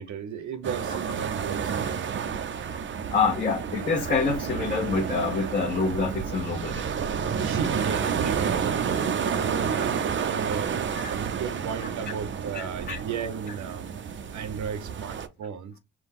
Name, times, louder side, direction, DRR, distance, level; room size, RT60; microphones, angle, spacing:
voice 1, 0.0-2.1 7.1-13.8 14.3-15.8, right 7 dB, 70° right, 0.8 m, -35 dB
sound 1, 0.6-15.3, right 7 dB, 40° right, 0.6 m, -30 dB
voice 2, 3.1-6.8 7.2-7.3 9.5-9.6 11.0-11.1 11.8-11.9 12.5-13.0, left 4 dB, 30° left, 1.0 m, -27 dB
4.7 x 2.3 x 3.5 m
cardioid pair, 90°, 30 cm